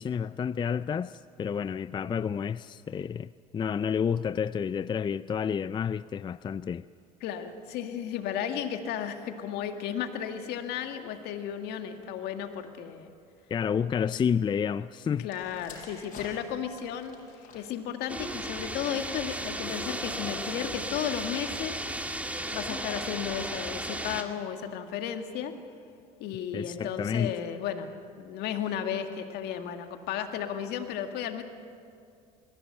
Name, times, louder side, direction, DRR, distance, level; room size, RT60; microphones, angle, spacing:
voice 1, 0.0-6.8 13.5-15.3 26.5-27.3, left 7 dB, 25° left, 16 dB, 0.4 m, -30 dB
voice 2, 7.2-13.1 15.2-17.2 17.5-21.7 22.5-25.5 26.2-27.9 28.2-31.4, left 9 dB, 65° left, 6 dB, 2.0 m, -34 dB
sound 1, 15.3-19.1 19.9-20.1, left 4 dB, 45° left, 6.9 m, -49 dB
sound 2, 18.1-24.2, right 1 dB, 10° right, 2.2 m, -35 dB
22.5 x 16.0 x 9.0 m, 2.3 s
hypercardioid pair, 75°, 18 cm